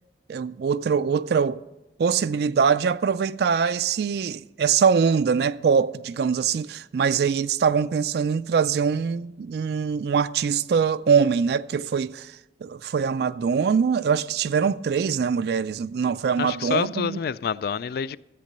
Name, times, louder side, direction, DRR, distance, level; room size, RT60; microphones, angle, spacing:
voice 1, 0.3-1.6 2.0-12.4 12.6-17.2, right 6 dB, 60° right, 0.3 m, -23 dB
voice 2, 16.4-18.2, left 6 dB, 55° left, 0.3 m, -27 dB
13.5 x 8.4 x 6.6 m
head